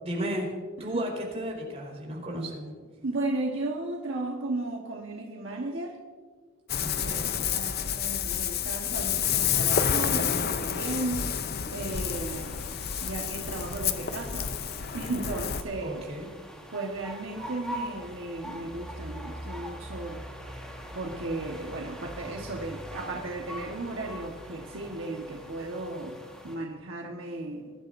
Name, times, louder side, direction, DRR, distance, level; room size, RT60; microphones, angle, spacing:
voice 1, 0.0-0.5 0.8-2.7 6.8-7.3 15.8-16.3, equal, 30° right, -3 dB, 4.6 m, -34 dB
voice 2, 3.0-6.0 7.0-11.3 11.7-12.6 13.0-14.5 14.9-16.1 16.7-20.3 20.9-27.7, right 2 dB, 65° right, 0 dB, 1.3 m, -35 dB
Ocean, 6.7-15.6, left 8 dB, 50° left, 0.7 m, -29 dB
sound 1, 11.9-26.6, equal, 5° left, 1.5 m, -43 dB
22.0 x 12.5 x 2.6 m, 1.5 s
head